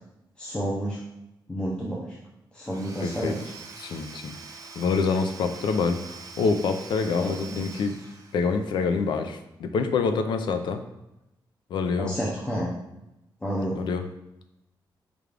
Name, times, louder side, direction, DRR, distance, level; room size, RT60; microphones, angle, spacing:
voice 1, 0.4-1.0 1.5-2.2 2.5-3.5 7.1-7.6 12.0-12.7 13.4-13.8, equal, 15° left, -6 dB, 0.5 m, -30 dB
Domestic sounds home sounds / Tools, 2.6-8.8, right 4 dB, 50° right, 0.5 m, -44 dB
voice 2, 3.0-3.3 3.8-4.3 4.8-7.9 8.3-10.8 11.7-12.1 13.7-14.0, left 4 dB, 75° left, 7 dB, 0.4 m, -26 dB
5.0 x 2.4 x 3.3 m, 0.91 s
wide cardioid pair, 170°, 8 cm